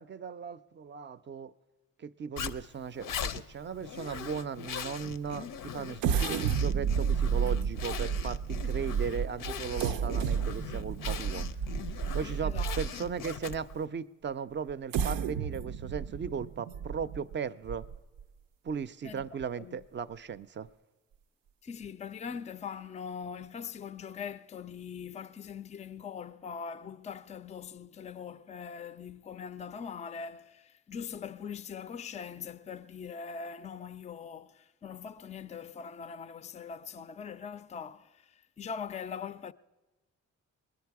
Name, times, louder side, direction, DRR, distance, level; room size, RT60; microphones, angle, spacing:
voice 1, 0.0-1.5 2.0-11.5 12.1-17.9 18.6-20.7, right 6 dB, 35° right, 0.5 m, -37 dB
Zipper (clothing), 2.4-13.8, left 7 dB, 75° left, 0.6 m, -40 dB
sound 1, 6.0-13.1 13.7-13.8 14.7-18.2 18.7-18.8 19.2-19.4, right 7 dB, 90° right, 0.5 m, -31 dB
voice 2, 12.4-13.1 19.0-19.3 19.6-19.8 21.6-39.5, left 6 dB, 20° left, 0.4 m, -42 dB
20.5 x 10.0 x 4.7 m
cardioid pair, 70°, 32 cm